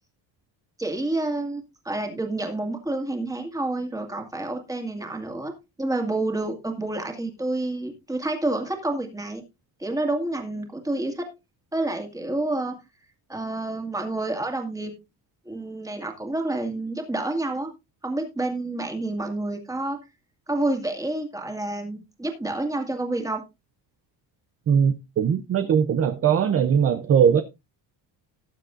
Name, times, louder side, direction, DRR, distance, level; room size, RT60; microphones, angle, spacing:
voice 1, 0.8-5.5 5.8-9.4 9.8-11.3 11.7-12.8 13.3-14.9 15.5-17.7 18.0-20.0 20.5-23.4, right 2 dB, 10° right, 2.2 m, -29 dB
voice 2, 24.7-27.4, right 7 dB, 30° right, 0.6 m, -20 dB
18.5 x 7.4 x 2.5 m
cardioid pair, 155°, 45 cm